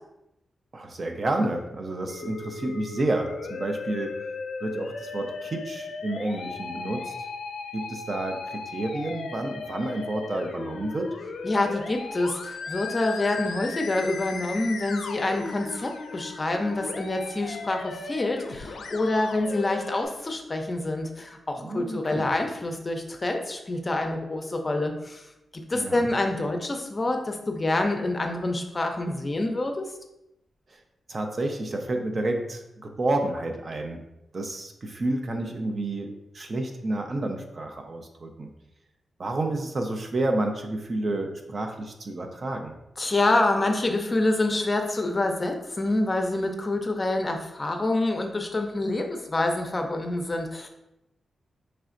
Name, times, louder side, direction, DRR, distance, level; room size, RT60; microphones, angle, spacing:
voice 1, 0.7-4.2 4.6-7.1 7.7-11.1 21.6-22.3 25.7-26.1 31.1-34.0 34.3-36.1 36.3-38.5 39.2-42.7, right 2 dB, 45° right, 4 dB, 0.5 m, -30 dB
Musical instrument, 2.1-20.1, left 4 dB, 85° left, 0.4 m, -37 dB
voice 2, 11.4-25.2 25.5-29.9 43.0-50.7, left 2 dB, 30° left, 4 dB, 0.5 m, -27 dB
4.1 x 3.2 x 2.5 m, 0.89 s
cardioid pair, 75°, 0 cm